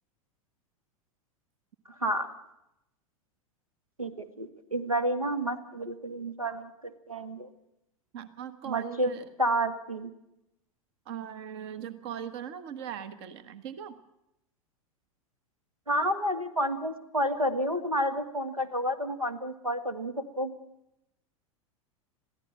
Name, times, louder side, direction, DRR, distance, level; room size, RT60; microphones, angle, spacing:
voice 1, 2.0-2.3 4.0-6.7 7.1-7.5 8.7-9.1 9.4-10.1 15.9-20.5, equal, 90° right, 12 dB, 1.4 m, -30 dB
voice 2, 8.1-9.2 11.0-14.0, right 9 dB, 50° right, 13 dB, 1.3 m, -39 dB
22.0 x 15.0 x 8.8 m, 0.85 s
figure-of-eight pair, 90°, 18 cm